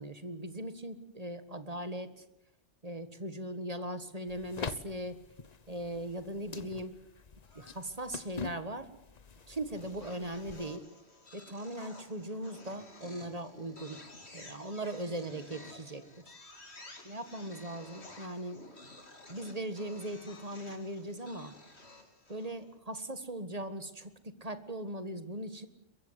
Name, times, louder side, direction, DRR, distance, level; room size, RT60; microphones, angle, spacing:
voice 1, 0.0-2.3 2.8-5.2 5.7-7.0 7.5-8.9 9.5-10.8 11.3-14.0 14.3-16.2 17.0-18.6 19.3-21.5 22.3-25.7, right 1 dB, 30° right, 10 dB, 1.7 m, -39 dB
sound 1, 4.3-10.8, left 5 dB, 35° left, 1.0 m, -45 dB
sound 2, 7.4-8.2 9.8-22.7, left 2 dB, 60° left, 3.5 m, -53 dB
23.0 x 22.5 x 8.1 m, 0.85 s
omnidirectional pair, 1.2 m